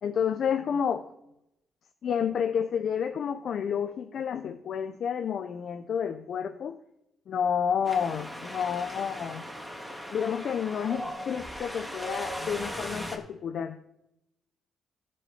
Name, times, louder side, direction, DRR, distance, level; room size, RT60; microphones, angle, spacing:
voice 1, 0.0-1.0 2.0-6.8 7.3-9.5 10.1-13.8, left 7 dB, 60° left, 8 dB, 0.7 m, -30 dB
Wind, 7.8-13.2, equal, ahead, 2.1 m, -38 dB
14.5 x 5.5 x 5.6 m, 0.84 s
cardioid pair, 90°, 0 cm